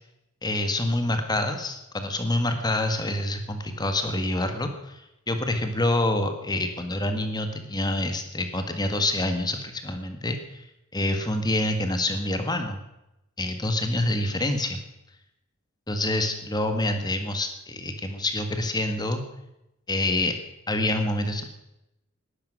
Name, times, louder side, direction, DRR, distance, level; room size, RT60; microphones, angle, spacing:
voice 1, 0.4-10.7 10.9-12.8 13.4-14.8 15.9-19.2 19.9-20.4 20.7-21.5, left 1 dB, 20° left, 6 dB, 1.7 m, -27 dB
19.5 x 12.0 x 6.3 m, 0.87 s
head